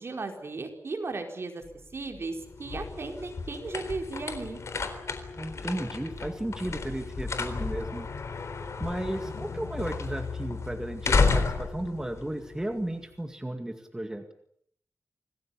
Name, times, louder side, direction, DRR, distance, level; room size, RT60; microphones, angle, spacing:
voice 1, 0.0-1.6 1.9-4.6, right 3 dB, 50° right, 4 dB, 4.6 m, -36 dB
sound 1, 1.6-4.0 4.4-4.5 5.6-8.6 9.0-9.7, left 3 dB, 45° left, 3.3 m, -51 dB
sound 2, 2.3-13.1, left 4 dB, 65° left, 3.9 m, -32 dB
voice 2, 5.3-8.1 8.8-14.3, right 1 dB, 10° right, 6 dB, 2.1 m, -34 dB
27.0 x 19.5 x 8.6 m, 0.67 s
wide cardioid pair, 140°, 5 cm